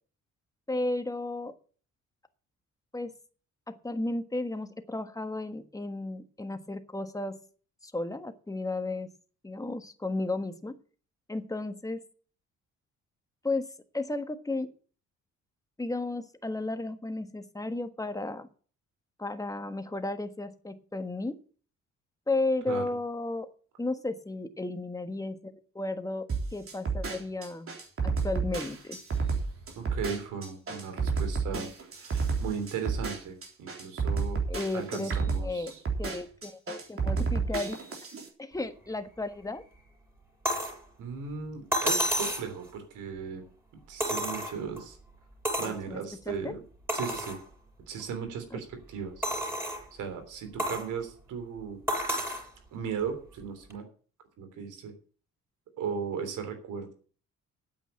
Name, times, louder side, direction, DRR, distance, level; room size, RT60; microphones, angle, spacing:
voice 1, 0.7-1.5 2.9-3.1 3.7-7.4 7.8-9.1 9.4-10.7 11.3-12.0 13.4-13.7 13.9-14.7 15.8-18.5 19.2-21.4 22.3-23.5 23.8-27.7 28.0-29.0 34.5-35.2 35.4-37.8 38.4-39.6 45.6-46.0 46.3-46.6 48.5-48.6, left 2 dB, 10° left, 9 dB, 1.5 m, -34 dB
sound 1, 26.3-38.3, right 4 dB, 45° right, 3.7 m, -31 dB
voice 2, 29.7-31.7 31.9-34.4 34.7-35.8 41.0-43.4 43.9-45.0 45.6-46.6 46.9-47.4 47.9-49.2 49.9-51.8 52.7-53.9 54.4-54.9 55.8-56.9, right 6 dB, 85° right, 8 dB, 3.4 m, -36 dB
sound 2, 40.4-40.8 41.7-42.5 44.0-44.8 45.4-45.8 46.3-46.4 46.9-47.4 48.0-48.1 49.2-49.8 50.6-50.9 51.9-52.5 53.7-53.8, equal, 10° right, 6.6 m, -30 dB
9.3 x 8.0 x 8.9 m, 0.42 s
cardioid pair, 90°, 30 cm